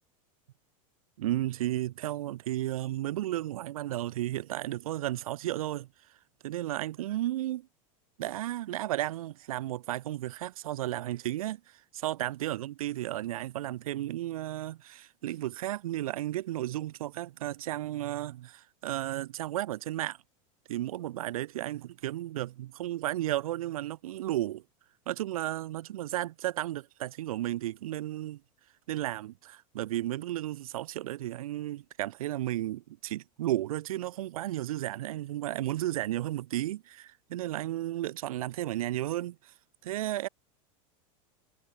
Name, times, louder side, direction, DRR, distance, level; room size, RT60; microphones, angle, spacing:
voice 1, 1.2-5.9 6.4-7.7 8.2-20.2 20.7-24.6 25.1-28.4 28.9-39.5 39.9-40.3, right 14 dB, 85° right, 7.1 m, -33 dB
supercardioid pair, 155°, 18 cm